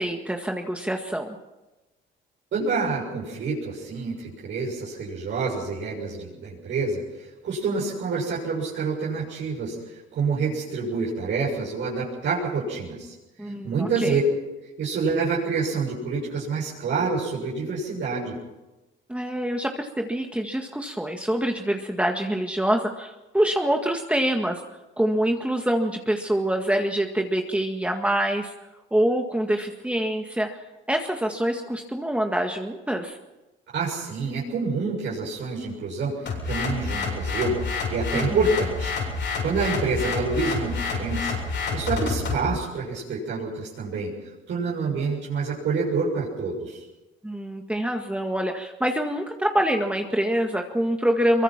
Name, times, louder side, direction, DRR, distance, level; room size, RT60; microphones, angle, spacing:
voice 1, 0.0-1.4 13.4-14.2 19.1-24.6 25.0-28.5 28.9-30.6 30.9-33.2 38.1-38.4 47.2-51.4, right 1 dB, 5° right, 3 dB, 1.8 m, -25 dB
voice 2, 2.5-14.2 14.8-18.4 33.7-36.1 36.4-37.6 37.9-38.9 39.4-41.4 41.7-46.8, right 4 dB, 70° right, -6 dB, 7.0 m, -27 dB
sound 1, 36.3-42.5, left 4 dB, 65° left, 7.5 m, -28 dB
23.5 x 22.5 x 6.0 m, 1.1 s
cardioid pair, 90°, 20 cm